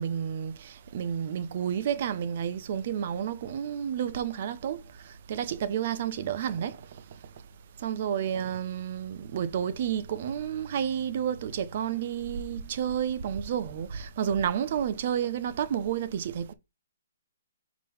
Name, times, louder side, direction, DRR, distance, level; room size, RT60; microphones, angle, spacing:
voice 1, 0.0-4.8 5.3-6.8 7.8-16.5, right 9 dB, 40° right, 0.7 m, -30 dB
4.8 x 3.8 x 5.4 m
hypercardioid pair, 170°, 0 cm